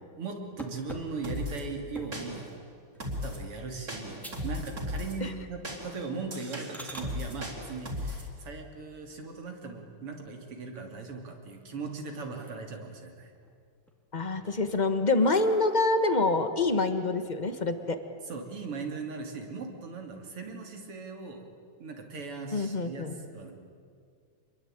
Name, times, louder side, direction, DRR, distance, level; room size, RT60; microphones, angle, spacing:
voice 1, 0.2-2.5 3.2-13.3 18.3-21.5 21.8-23.5, right 4 dB, 90° right, 3 dB, 3.8 m, -39 dB
sound 1, 0.6-2.4 2.9-3.3 3.7-3.8 4.2-4.6 4.9-5.4 5.7-5.9 6.4-7.1 9.1-9.8 10.2-10.3 10.7-10.8 11.1-11.9 12.3-12.9 13.3-13.9 14.5-16.2, equal, ahead, 2.2 m, -48 dB
sound 2, 1.2-1.6 2.1-2.6 3.0-3.4 3.9-5.2 5.6-8.3, left 1 dB, 40° right, 4.2 m, -36 dB
voice 2, 14.1-18.0 22.5-23.1, left 3 dB, 25° left, 9 dB, 1.3 m, -26 dB
26.5 x 22.5 x 9.1 m, 2.2 s
omnidirectional pair, 2.4 m